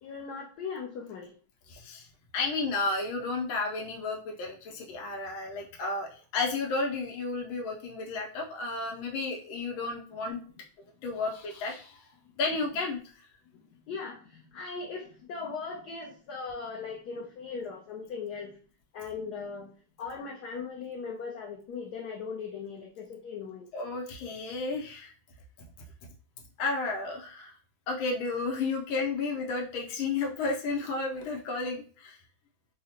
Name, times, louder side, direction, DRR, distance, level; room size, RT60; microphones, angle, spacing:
voice 1, 0.0-1.3 13.9-18.6 18.9-19.7 20.0-23.7, left 5 dB, 70° left, -1 dB, 1.0 m, -39 dB
voice 2, 1.7-2.1 2.3-10.4 11.0-12.0 12.4-13.0 23.7-25.1 26.6-27.5 27.9-32.2, left 3 dB, 90° left, 0 dB, 1.5 m, -32 dB
4.7 x 2.1 x 2.8 m, 0.40 s
omnidirectional pair, 2.1 m